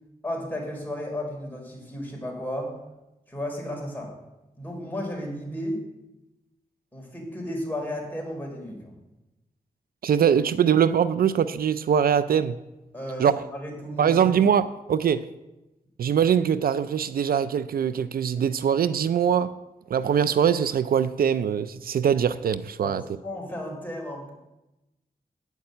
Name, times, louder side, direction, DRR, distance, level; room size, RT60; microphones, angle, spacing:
voice 1, 0.2-2.7 3.3-4.1 4.6-5.8 6.9-8.9 12.9-14.1 14.4-14.5 22.8-24.3, left 1 dB, 10° left, 4.6 m, -34 dB
voice 2, 10.0-12.6 13.2-13.5 14.0-15.3 16.0-19.5 19.9-23.0, right 8 dB, 75° right, 0.4 m, -22 dB
9.5 x 7.2 x 7.8 m
cardioid pair, 65°, 15 cm